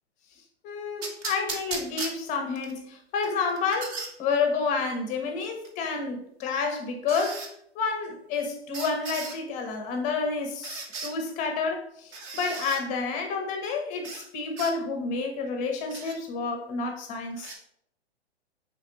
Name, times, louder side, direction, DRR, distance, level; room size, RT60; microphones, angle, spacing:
voice 1, 0.6-7.5 7.7-17.6, left 4 dB, 25° left, 4 dB, 0.6 m, -30 dB
sound 1, 1.0-2.7 3.2-4.1 5.6-5.7 7.1-7.5 8.7-9.4 10.6-11.1 12.1-12.8 14.0-14.3 14.6-14.7 15.9-16.2 17.4-17.6, right 4 dB, 20° right, 0.4 m, -36 dB
4.1 x 3.4 x 2.9 m, 0.72 s
hypercardioid pair, 120°, 33 cm